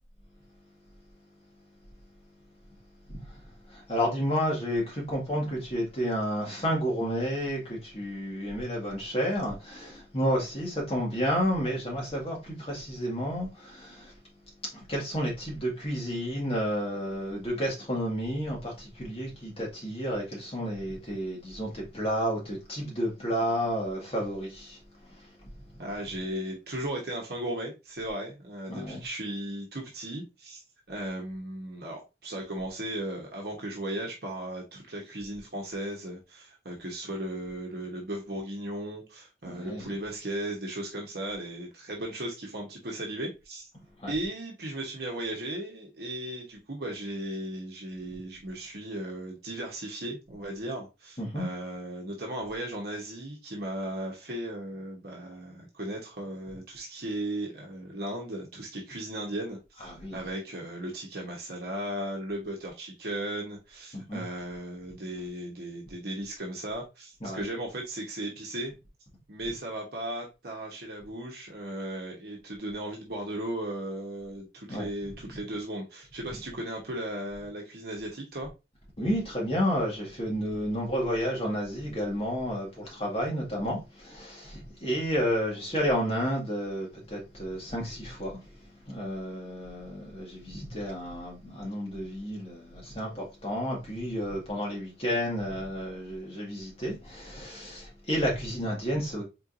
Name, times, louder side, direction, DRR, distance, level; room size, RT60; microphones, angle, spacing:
voice 1, 3.1-14.1 14.6-24.8 25.1-25.5 28.7-29.0 39.4-39.9 44.0-44.1 51.2-51.5 59.8-60.2 63.9-64.2 67.2-67.5 74.7-74.9 75.3-75.4 79.0-99.2, equal, 30° left, 1.9 m, -31 dB
voice 2, 25.8-30.6 30.9-43.7 44.1-59.8 60.1-68.7 69.3-78.5, right 1 dB, 60° right, 1.0 m, -36 dB
4.4 x 3.8 x 2.5 m
head